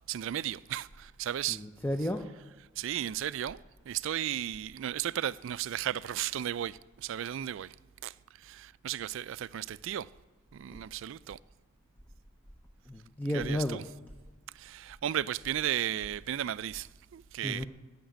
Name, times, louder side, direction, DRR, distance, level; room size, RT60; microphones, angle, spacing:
voice 1, 0.1-1.6 2.8-7.8 8.0-10.1 10.5-11.4 13.3-13.8 14.5-17.7, right 11 dB, 65° right, 0.3 m, -35 dB
voice 2, 1.5-2.2 10.7-10.8 12.9-13.8 17.4-17.7, left 1 dB, 10° left, 0.5 m, -32 dB
13.0 x 5.9 x 9.2 m
head